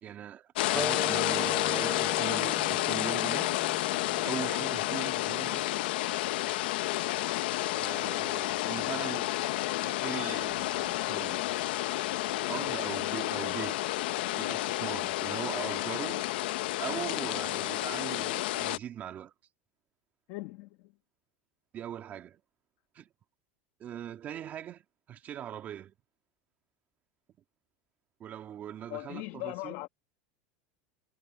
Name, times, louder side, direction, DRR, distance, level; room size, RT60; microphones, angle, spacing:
voice 1, 0.0-3.6 4.2-5.7 7.7-9.3 9.8-11.4 12.5-13.8 14.3-16.3 16.8-19.3 21.7-22.4 22.9-23.1 23.8-24.8 25.1-25.9 28.2-29.7, right 10 dB, 30° right, 2.0 m, -41 dB
sound 1, 0.5-18.8, left 17 dB, 80° left, 0.8 m, -30 dB
Wind instrument woodwind instrument, 0.7-5.9, equal, ahead, 0.9 m, -40 dB
voice 2, 20.3-20.9 28.9-29.9, left 21 dB, 55° left, 1.3 m, -39 dB
supercardioid pair, 150°, 5 cm